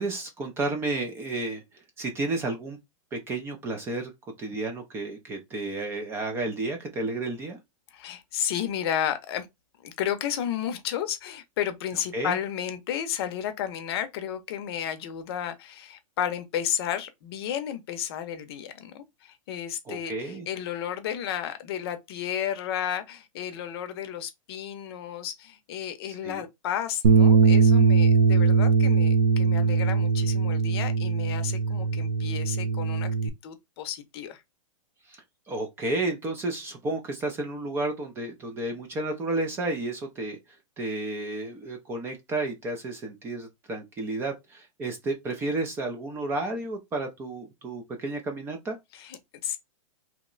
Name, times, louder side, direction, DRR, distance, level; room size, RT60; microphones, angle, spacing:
voice 1, 0.0-2.8 3.1-4.1 4.4-7.6 12.1-12.4 19.9-20.5 26.2-26.4 35.1-40.4 40.8-48.8, right 2 dB, 15° right, 0.4 m, -32 dB
voice 2, 7.9-9.5 9.8-34.4 48.9-49.6, left 10 dB, 45° left, 0.7 m, -32 dB
Bass guitar, 27.0-33.3, right 5 dB, 80° right, 0.7 m, -21 dB
2.9 x 2.1 x 3.8 m
hypercardioid pair, 155°, 17 cm